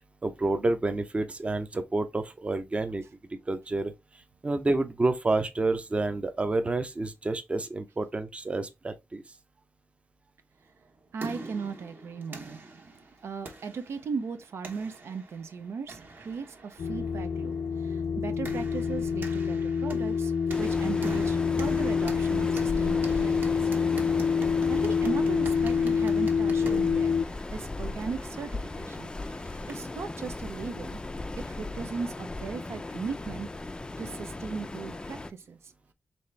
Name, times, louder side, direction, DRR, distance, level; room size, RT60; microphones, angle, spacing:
voice 1, 0.2-3.0 3.3-3.9 4.4-9.2 26.6-26.8, right 2 dB, 25° right, 0.6 m, -29 dB
sound 1, 10.8-30.0, right 3 dB, 50° right, 1.1 m, -45 dB
voice 2, 11.1-12.7 13.2-23.5 23.9-27.1 27.5-29.1 29.7-31.0 31.4-33.5 34.0-35.7, right 5 dB, 80° right, 0.6 m, -37 dB
sound 2, 16.8-27.3, left 6 dB, 75° left, 0.5 m, -27 dB
Waves surf, 20.5-35.3, left 2 dB, 20° left, 0.4 m, -37 dB
4.2 x 3.3 x 3.2 m
wide cardioid pair, 105°, 4 cm